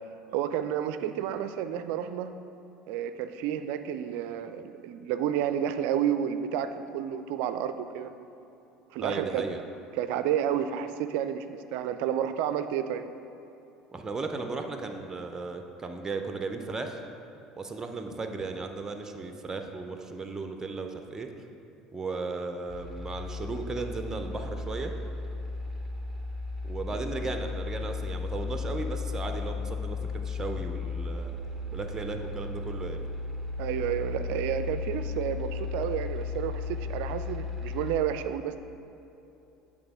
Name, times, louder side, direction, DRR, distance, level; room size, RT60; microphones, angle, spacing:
voice 1, 0.3-2.3 2.9-8.1 8.9-9.4 9.9-13.1 26.9-27.0 33.6-38.6, right 9 dB, 60° right, 10 dB, 0.3 m, -30 dB
voice 2, 9.0-9.6 13.9-17.0 17.6-21.3 21.9-24.9 26.6-31.4 31.7-33.1, right 3 dB, 20° right, 5 dB, 0.6 m, -35 dB
sound 1, 22.7-38.0, left 4 dB, ahead, 1.0 m, -35 dB
8.7 x 3.6 x 4.9 m, 2.9 s
figure-of-eight pair, 65°, 3 cm